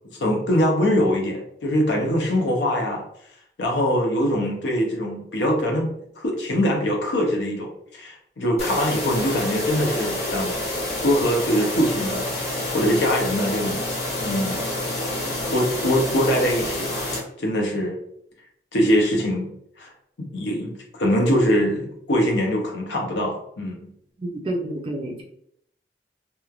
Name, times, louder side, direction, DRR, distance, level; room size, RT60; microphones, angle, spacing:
voice 1, 0.2-3.0 3.6-5.9 6.2-10.6 11.0-12.3 12.7-13.9 14.2-14.6 15.5-17.1 17.4-18.0 18.7-19.5 19.8-19.9 20.2-23.9, equal, 90° left, 0 dB, 0.6 m, -23 dB
sound 1, 8.6-17.2, left 1 dB, 40° left, 0.8 m, -28 dB
voice 2, 24.2-25.2, right 1 dB, 30° right, 0 dB, 0.4 m, -29 dB
3.0 x 2.1 x 2.3 m, 0.70 s
head